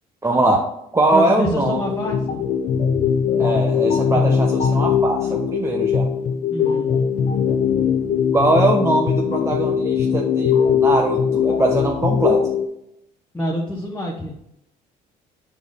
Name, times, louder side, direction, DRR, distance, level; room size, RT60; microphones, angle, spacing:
voice 1, 0.2-1.8 3.4-6.1 8.3-12.5, right 2 dB, 15° right, 0 dB, 0.8 m, -21 dB
voice 2, 1.1-2.4 4.1-4.5 6.5-7.0 13.3-14.4, left 1 dB, 10° left, -3 dB, 1.2 m, -27 dB
sound 1, 1.6-12.7, left 7 dB, 50° left, 0.8 m, -20 dB
7.2 x 4.2 x 3.6 m, 0.79 s
cardioid pair, 110°, 17 cm